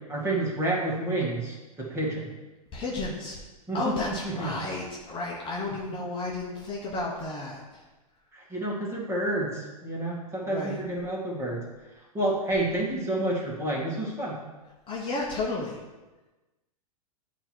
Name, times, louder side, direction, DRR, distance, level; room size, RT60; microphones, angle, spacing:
voice 1, 0.1-2.3 3.7-3.8 4.2-4.5 8.3-11.6 12.1-14.4, right 1 dB, 15° right, -4 dB, 2.0 m, -29 dB
voice 2, 2.7-3.4 3.7-7.8 10.4-10.8 14.9-15.8, left 2 dB, 25° left, -2 dB, 1.1 m, -32 dB
8.7 x 3.1 x 4.5 m, 1.2 s
hypercardioid pair, 105°, 19 cm